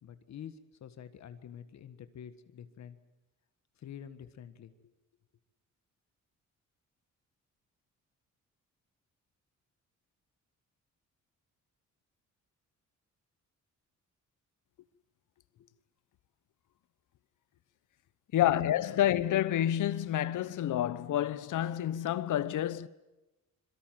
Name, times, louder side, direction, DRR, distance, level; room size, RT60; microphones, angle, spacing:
voice 1, 0.0-3.0 3.8-4.9 15.5-15.7 18.4-18.6 18.9-19.0, left 9 dB, 60° left, 1.7 m, -48 dB
voice 2, 18.3-22.9, left 12 dB, 80° left, 1.1 m, -29 dB
26.0 x 23.0 x 7.7 m
cardioid pair, 150°, 30 cm